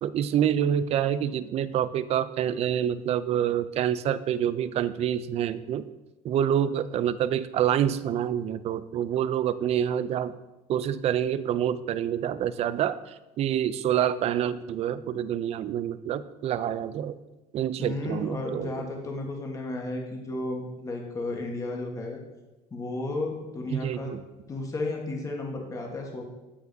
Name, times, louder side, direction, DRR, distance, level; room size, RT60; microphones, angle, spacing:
voice 1, 0.0-5.8 6.2-10.3 10.7-17.2 17.5-18.7 23.7-24.2, right 10 dB, 45° right, 15 dB, 0.4 m, -27 dB
voice 2, 17.8-22.2 22.7-24.1 24.5-26.2, left 2 dB, 20° left, 1 dB, 1.2 m, -33 dB
12.5 x 4.8 x 2.7 m, 1.0 s
cardioid pair, 125°, 15 cm